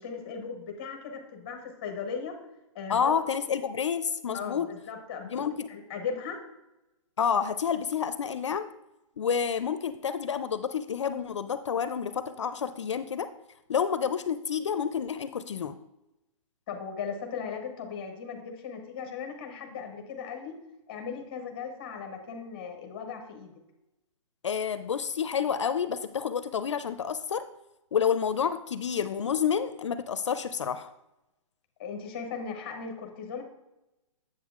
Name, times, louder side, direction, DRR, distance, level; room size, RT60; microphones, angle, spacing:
voice 1, 0.0-2.4 2.7-3.2 4.3-5.4 5.7-6.4 16.7-20.5 20.9-23.6 31.8-33.4, left 6 dB, 15° left, 4 dB, 0.6 m, -37 dB
voice 2, 2.9-4.7 5.3-5.7 7.2-8.7 9.2-13.3 13.7-15.8 24.4-27.4 27.9-30.9, left 7 dB, 60° left, 12 dB, 0.4 m, -29 dB
8.1 x 7.5 x 2.4 m, 0.91 s
hypercardioid pair, 180°, 17 cm